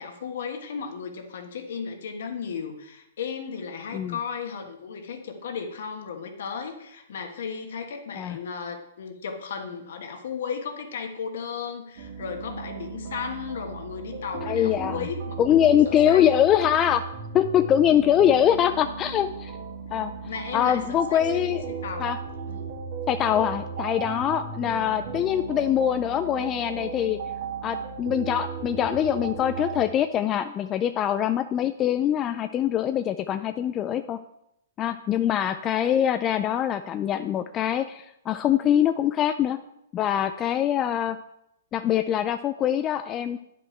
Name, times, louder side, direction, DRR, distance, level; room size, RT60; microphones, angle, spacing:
voice 1, 0.0-15.6 15.8-16.3 20.3-22.1 22.5-22.7, left 6 dB, 65° left, 5 dB, 1.3 m, -35 dB
sound 1, 12.0-29.8, right 5 dB, 60° right, 2.3 m, -36 dB
voice 2, 14.5-15.1 15.4-17.0 17.3-19.5 19.9-20.1 20.5-21.6 22.0-22.2 23.1-27.2 27.6-34.2 34.8-39.6 39.9-41.2 41.7-43.4, left 10 dB, 25° left, 9 dB, 0.3 m, -23 dB
9.4 x 5.4 x 4.4 m, 0.81 s
hypercardioid pair, 125°, 0 cm